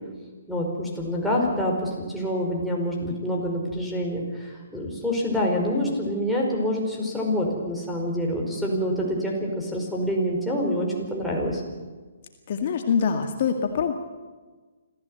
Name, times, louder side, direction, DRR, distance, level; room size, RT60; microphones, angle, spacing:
voice 1, 0.5-11.6, equal, ahead, -3 dB, 5.1 m, -26 dB
voice 2, 12.5-13.9, left 6 dB, 50° left, 5 dB, 1.9 m, -24 dB
26.5 x 15.0 x 7.9 m, 1.4 s
figure-of-eight pair, 135°, 0 cm